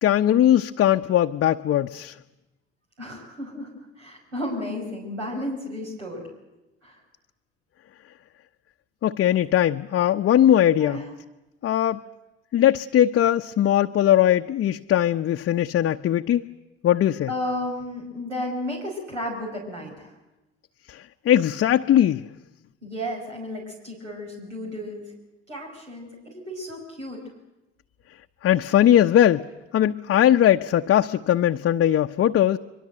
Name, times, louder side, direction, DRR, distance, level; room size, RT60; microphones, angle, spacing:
voice 1, 0.0-2.1 9.0-11.0 11.6-12.0 12.5-16.4 16.8-17.3 20.9-22.3 28.4-29.5 29.7-32.6, left 11 dB, 40° left, 0.8 m, -20 dB
voice 2, 3.0-6.2 6.8-7.0 10.8-11.0 17.3-20.1 22.8-25.1 25.5-27.2, left 1 dB, 90° right, 5.3 m, -33 dB
23.0 x 22.0 x 7.7 m
figure-of-eight pair, 65°, 35 cm